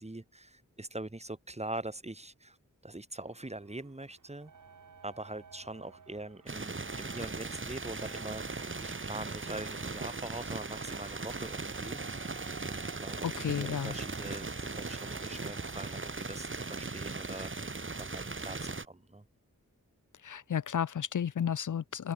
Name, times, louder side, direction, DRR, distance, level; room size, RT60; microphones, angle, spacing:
voice 1, 0.0-2.6 2.8-4.5 5.0-19.2, right 2 dB, 20° right, 3.8 m, -43 dB
sound 1, 3.2-16.2, right 6 dB, 90° right, 5.7 m, -54 dB
sound 2, 6.5-18.9, right 3 dB, 40° right, 3.0 m, -39 dB
voice 2, 13.2-13.9 20.2-22.1, left 8 dB, 75° left, 0.8 m, -32 dB
wide cardioid pair, 75°, 30 cm